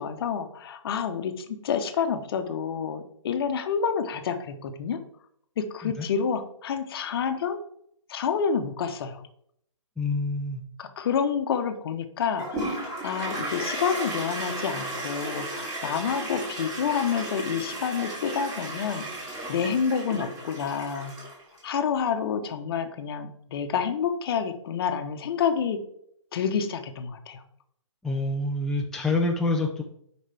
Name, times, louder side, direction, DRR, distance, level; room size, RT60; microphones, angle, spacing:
voice 1, 0.0-5.0 5.6-7.6 8.1-9.2 10.8-19.1 19.5-21.1 21.6-25.8 26.3-27.4, left 7 dB, 50° left, 8 dB, 1.0 m, -28 dB
voice 2, 10.0-10.6 28.0-29.8, left 2 dB, 5° left, 0 dB, 0.5 m, -26 dB
Toilet flush, 12.4-21.6, right 1 dB, 20° right, 3.2 m, -34 dB
9.8 x 5.1 x 3.4 m, 0.70 s
hypercardioid pair, 140°, 16 cm